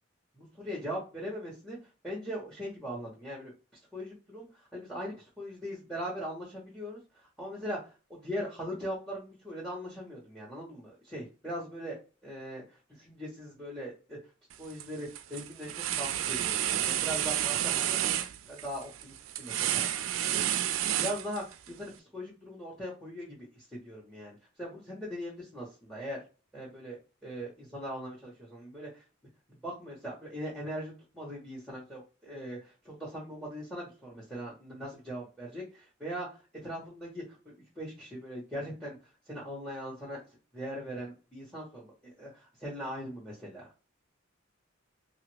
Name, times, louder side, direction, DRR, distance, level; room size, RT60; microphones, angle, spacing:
voice 1, 0.4-1.8 2.0-3.5 3.9-7.0 7.4-12.0 12.2-12.6 13.0-14.2 14.6-18.0 18.5-19.9 20.3-20.4 21.0-26.2 26.5-29.0 29.6-36.3 36.6-39.0 39.3-40.2 40.5-43.7, equal, ahead, -4 dB, 0.9 m, -40 dB
sound 1, 14.5-14.8 15.1-21.7, right 11 dB, 80° right, 0.3 m, -30 dB
2.9 x 2.4 x 3.1 m, 0.32 s
head